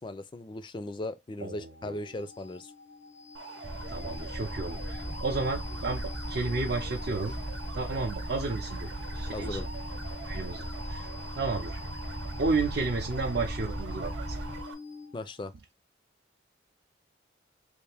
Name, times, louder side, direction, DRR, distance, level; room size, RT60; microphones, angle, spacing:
voice 1, 0.0-2.7 9.3-9.7 15.1-15.5, left 1 dB, 25° left, 0.3 m, -37 dB
voice 2, 1.4-2.0 3.9-6.0 6.3-7.3 7.7-8.9 9.1-9.6 10.2-11.1 11.4-11.8 12.4-14.3, right 3 dB, 60° right, 0.5 m, -32 dB
sound 1, 1.5-15.4, left 4 dB, 90° left, 0.7 m, -46 dB
sound 2, 3.3-14.7, right 3 dB, 85° right, 0.9 m, -45 dB
sound 3, 3.6-14.6, right 1 dB, 40° right, 0.9 m, -38 dB
3.3 x 2.5 x 3.4 m
head